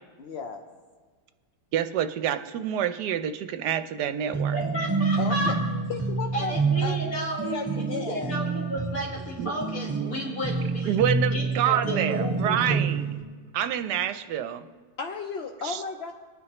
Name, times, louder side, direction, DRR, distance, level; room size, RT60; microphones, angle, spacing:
voice 1, 0.2-0.6 5.2-5.6 5.9-7.0 7.4-8.4 15.0-16.1, left 5 dB, 70° left, 4 dB, 0.6 m, -34 dB
voice 2, 1.7-4.6 9.4-9.5 10.8-13.1 13.5-14.7 15.6-15.8, right 10 dB, 75° right, 10 dB, 1.1 m, -27 dB
sound 1, 4.3-13.2, right 4 dB, 15° right, 0.9 m, -28 dB
voice 3, 4.5-5.6 6.3-11.0 11.3-12.8, right 1 dB, 50° left, -2 dB, 2.4 m, -32 dB
20.5 x 9.5 x 2.9 m, 1.5 s
omnidirectional pair, 1.9 m